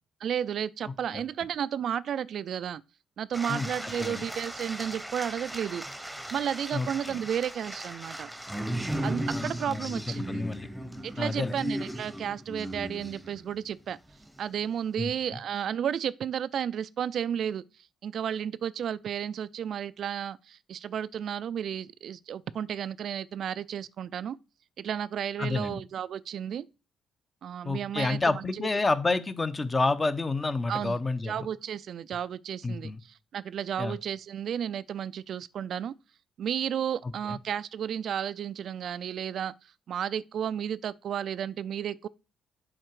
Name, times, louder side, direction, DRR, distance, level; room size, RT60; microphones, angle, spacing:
voice 1, 0.2-2.8 3.2-5.9 6.3-8.3 9.0-10.4 11.0-14.0 14.4-17.6 18.0-24.4 24.8-26.7 27.4-28.7 30.7-31.0 31.2-35.9 36.4-39.5 39.9-42.1, right 9 dB, 65° right, 0.3 m, -33 dB
voice 2, 0.8-1.2 3.5-4.2 6.7-7.2 9.3-10.0 10.3-10.7 11.2-11.5 15.0-15.1 25.4-25.8 27.6-31.5 32.6-33.0 33.8-34.0 37.3-37.4, left 3 dB, 25° left, 0.7 m, -29 dB
sound 1, 3.3-13.6 14.1-14.5, right 1 dB, 5° right, 0.9 m, -37 dB
7.6 x 4.8 x 4.7 m
cardioid pair, 90°, 0 cm